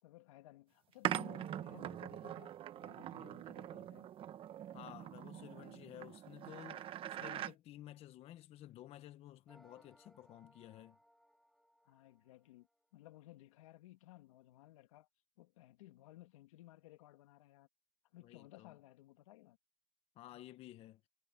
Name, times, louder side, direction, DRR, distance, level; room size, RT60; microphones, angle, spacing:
voice 1, 0.0-4.1 11.8-15.1 15.4-17.7 18.1-19.6, left 17 dB, 90° left, 2.5 m, -58 dB
sound 1, 1.0-7.5, right 11 dB, 30° right, 1.1 m, -43 dB
voice 2, 4.7-11.0 18.2-18.8 20.2-21.0, left 14 dB, 35° left, 1.0 m, -54 dB
sound 2, 9.5-12.9, equal, ahead, 3.9 m, -68 dB
supercardioid pair, 140°, 17 cm